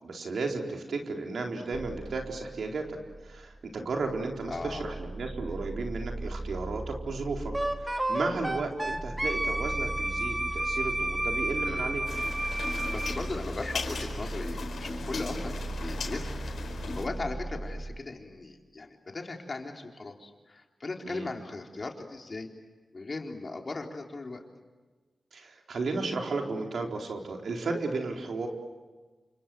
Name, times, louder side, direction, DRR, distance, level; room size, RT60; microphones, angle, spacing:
voice 1, 0.0-3.0 3.2-7.5 7.8-12.0 21.1-21.3 25.3-28.5, right 3 dB, 75° right, 2 dB, 4.2 m, -34 dB
sound 1, 1.7-18.0, right 2 dB, 35° right, 1.6 m, -39 dB
voice 2, 4.5-4.9 11.6-11.9 12.9-16.4 16.7-22.5 22.9-24.4, left 3 dB, 45° left, 2 dB, 4.1 m, -38 dB
Wind instrument woodwind instrument, 7.5-13.2, right 1 dB, 15° right, 2.2 m, -31 dB
sound 2, 12.1-17.0, left 4 dB, 80° left, 4.8 m, -38 dB
28.5 x 26.5 x 7.8 m, 1.3 s
cardioid pair, 60°, 0 cm